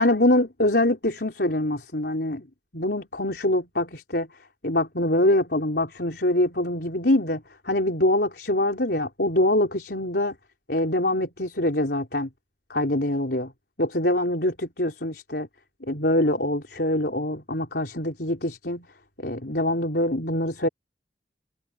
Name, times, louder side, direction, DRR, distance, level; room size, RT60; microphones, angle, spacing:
voice 1, 0.0-2.4 2.7-4.3 4.6-10.4 10.7-12.3 12.7-13.5 13.8-15.5 15.8-18.9 19.2-20.7, left 1 dB, 60° left, 4.7 m, -24 dB
head